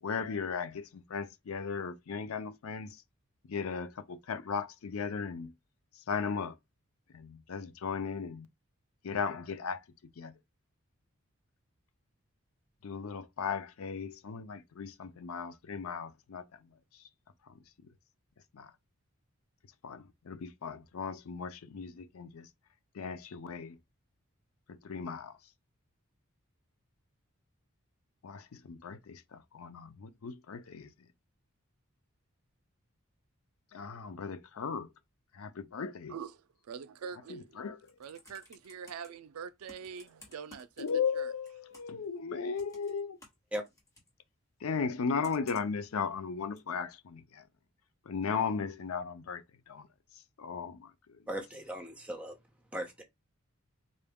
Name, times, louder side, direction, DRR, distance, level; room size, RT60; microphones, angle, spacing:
voice 1, 0.0-3.0 3.5-5.5 5.9-6.6 7.1-8.5 9.0-9.8 10.2-10.3 12.8-17.1 17.4-17.6 18.5-18.7 19.8-22.5 22.9-23.8 24.7-25.4 28.2-31.1 33.7-34.9 35.3-36.2 37.3-38.0 40.8-43.2 44.6-47.5 48.0-49.9 50.1-51.2, left 5 dB, 80° left, 0.5 m, -37 dB
voice 2, 36.1-37.6 38.0-40.9 41.2-41.3, right 6 dB, 90° right, 0.4 m, -44 dB
Computer keyboard, 37.7-39.1 39.7-41.2 41.4-42.0 42.6-44.1 45.2-45.8 46.6-46.7, left 2 dB, 15° left, 1.0 m, -56 dB
voice 3, 51.3-52.3 52.7-53.0, equal, 5° right, 0.8 m, -38 dB
3.8 x 2.2 x 3.5 m
head